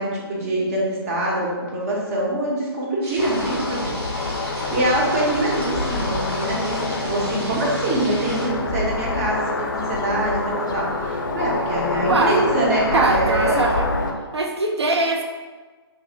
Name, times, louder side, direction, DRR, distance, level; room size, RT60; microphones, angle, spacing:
voice 1, 0.0-13.6, right 1 dB, 35° right, -3 dB, 0.8 m, -24 dB
sound 1, 3.0-8.5, right 1 dB, 70° right, 1.4 m, -37 dB
sound 2, 3.2-14.1, left 3 dB, 50° left, 0.4 m, -26 dB
sound 3, 6.0-9.5, right 1 dB, 15° right, 0.5 m, -40 dB
voice 2, 12.1-12.4 12.9-13.9 14.3-15.2, right 2 dB, 85° right, 2 dB, 0.4 m, -21 dB
3.0 x 2.1 x 3.4 m, 1.3 s
figure-of-eight pair, 135°, 14 cm